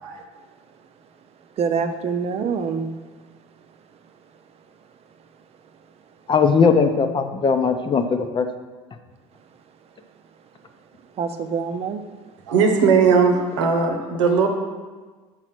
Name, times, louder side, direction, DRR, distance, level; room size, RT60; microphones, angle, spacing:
voice 1, 1.6-2.9 11.1-12.0, right 6 dB, 45° right, 8 dB, 0.7 m, -25 dB
voice 2, 6.3-8.5, left 5 dB, 35° left, 7 dB, 0.7 m, -19 dB
voice 3, 12.5-14.5, right 5 dB, 85° right, 3 dB, 1.0 m, -18 dB
6.2 x 4.0 x 6.0 m, 1.3 s
supercardioid pair, 85°, 15 cm